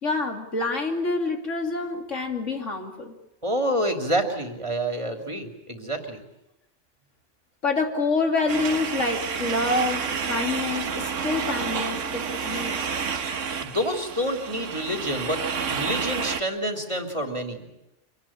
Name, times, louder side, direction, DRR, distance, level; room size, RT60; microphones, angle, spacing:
voice 1, 0.0-3.1 7.6-12.8, left 3 dB, 85° left, 3 dB, 3.4 m, -27 dB
voice 2, 3.4-6.2 13.6-15.4 15.7-17.7, equal, 25° right, 4 dB, 3.0 m, -28 dB
sound 1, 8.5-16.4, right 6 dB, 85° right, 1.5 m, -30 dB
26.0 x 19.5 x 8.8 m, 0.87 s
omnidirectional pair, 1.2 m